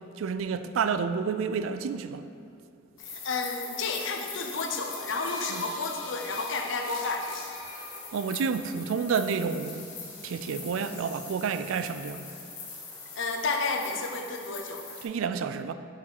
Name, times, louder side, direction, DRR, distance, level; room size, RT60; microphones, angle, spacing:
voice 1, 0.2-2.3 5.5-5.6 8.1-9.9 10.2-12.3 15.0-15.7, right 6 dB, 80° right, 0.3 m, -30 dB
sound 1, 3.0-15.0, left 4 dB, 85° left, 1.4 m, -42 dB
voice 2, 3.1-7.5 13.1-15.0, left 3 dB, 65° left, 0.6 m, -31 dB
sound 2, 4.5-8.7, equal, 20° right, 1.1 m, -46 dB
5.3 x 5.1 x 4.8 m
head